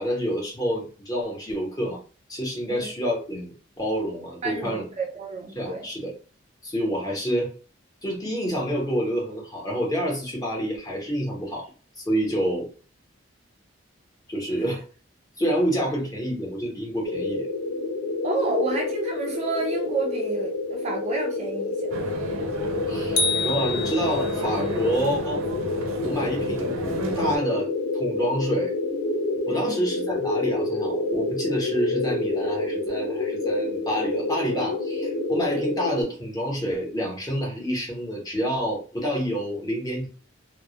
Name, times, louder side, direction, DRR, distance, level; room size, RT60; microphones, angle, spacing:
voice 1, 0.0-2.0 2.3-4.8 5.6-6.1 6.6-7.5 8.0-11.7 12.0-12.7 14.3-14.8 15.4-17.5 22.9-25.4 26.0-26.8 27.2-28.7 29.5-40.1, equal, 20° left, -1 dB, 0.7 m, -28 dB
voice 2, 4.4-5.9 18.2-21.9 29.5-29.8, right 3 dB, 30° right, 1 dB, 0.4 m, -30 dB
sound 1, 17.0-36.0, left 2 dB, 80° left, 1.0 m, -28 dB
sound 2, 21.9-27.4, right 2 dB, 85° right, 0.5 m, -33 dB
sound 3, 23.2-24.5, left 3 dB, 55° left, 0.3 m, -27 dB
2.2 x 2.0 x 2.8 m, 0.37 s
head